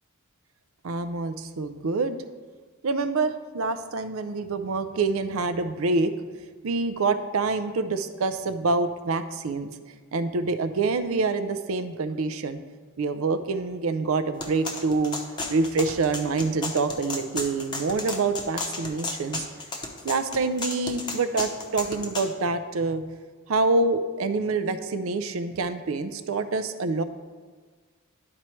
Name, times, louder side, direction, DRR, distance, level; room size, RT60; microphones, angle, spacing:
voice 1, 0.8-2.2 2.8-6.1 6.6-9.7 10.1-12.6 13.0-15.2 15.5-19.5 20.0-23.0 23.5-27.0, right 3 dB, 75° right, 11 dB, 0.5 m, -26 dB
sound 1, 14.4-22.3, left 3 dB, 20° left, 0.8 m, -33 dB
12.0 x 4.4 x 3.1 m, 1.5 s
head